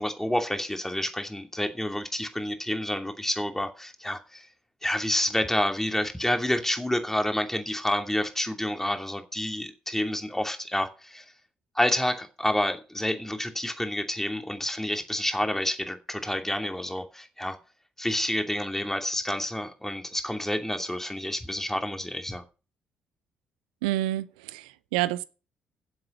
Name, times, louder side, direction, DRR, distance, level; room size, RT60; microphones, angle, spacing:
voice 1, 0.0-4.5 4.8-11.3 11.7-17.6 18.0-22.4, left 1 dB, 10° left, 2.7 m, -29 dB
voice 2, 23.8-25.2, right 15 dB, 85° right, 0.6 m, -28 dB
16.5 x 7.7 x 5.4 m
hypercardioid pair, 45°, 5 cm